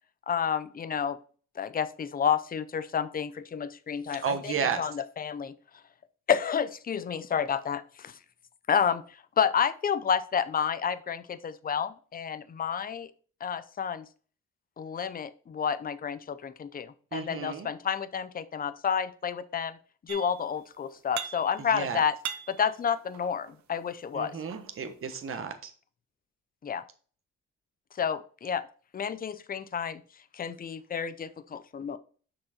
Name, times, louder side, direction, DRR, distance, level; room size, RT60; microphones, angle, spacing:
voice 1, 0.3-1.2 1.6-5.5 6.3-8.1 8.7-9.0 9.4-13.1 13.4-14.0 14.8-19.8 20.0-22.1 22.5-24.3 26.6-26.8 28.0-28.6 28.9-30.0 30.3-32.0, left 7 dB, 30° left, 13 dB, 0.6 m, -30 dB
voice 2, 4.2-4.9 17.1-17.7 21.6-22.0 24.1-25.7, right 6 dB, 45° right, 7 dB, 1.3 m, -33 dB
sound 1, 20.1-20.6 20.9-21.8 22.1-23.6 24.2-25.4, right 9 dB, 65° right, 1.0 m, -40 dB
6.0 x 5.0 x 4.3 m, 0.41 s
cardioid pair, 90°, 30 cm